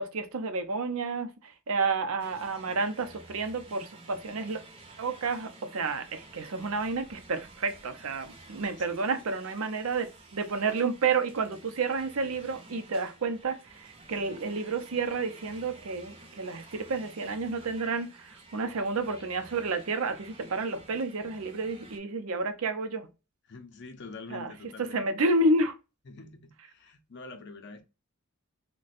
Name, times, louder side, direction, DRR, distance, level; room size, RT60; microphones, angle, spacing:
voice 1, 0.0-4.6 5.0-23.1 24.3-24.5 24.8-25.7, right 3 dB, 75° right, 0.6 m, -30 dB
sound 1, 2.2-22.0, right 2 dB, 25° right, 0.6 m, -52 dB
voice 2, 23.5-25.1 26.1-27.8, left 3 dB, 55° left, 0.6 m, -45 dB
2.5 x 2.2 x 4.0 m
head